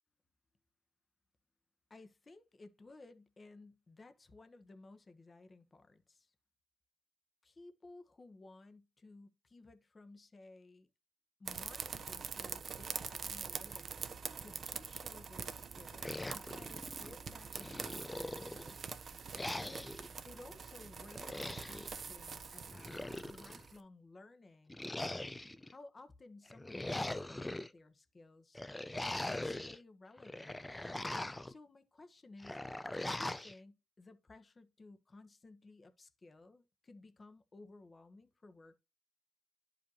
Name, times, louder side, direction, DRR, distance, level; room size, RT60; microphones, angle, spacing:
voice 1, 1.9-6.3 7.4-10.9 11.4-18.9 19.2-19.9 20.2-23.0 23.3-25.2 25.7-28.6 29.0-30.6 31.5-32.6 32.9-38.8, left 2 dB, 30° left, 1.1 m, -57 dB
sound 1, 11.5-23.8, right 5 dB, 45° right, 0.9 m, -45 dB
sound 2, 16.0-17.1 17.5-18.8 19.3-20.1 21.1-21.9 22.7-23.6 24.7-25.7 26.5-27.7 28.5-29.8 30.2-31.5 32.4-33.5, left 1 dB, 10° left, 0.5 m, -41 dB
11.0 x 5.1 x 2.9 m
cardioid pair, 90°, 0 cm